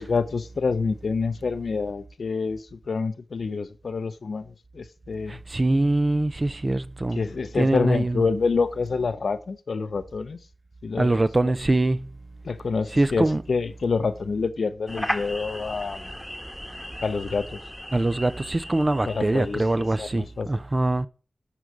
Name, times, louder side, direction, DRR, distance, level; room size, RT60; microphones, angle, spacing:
voice 1, 0.0-5.4 7.1-10.4 10.8-11.5 12.4-16.1 17.0-17.6 19.1-20.5, left 4 dB, 85° left, 0.6 m, -27 dB
voice 2, 5.3-7.2 7.6-8.2 11.0-12.1 12.9-13.4 17.9-21.1, right 2 dB, 40° right, 0.5 m, -23 dB
sound 1, 14.9-20.2, equal, 5° left, 1.3 m, -36 dB
11.5 x 3.9 x 4.5 m
cardioid pair, 50°, 0 cm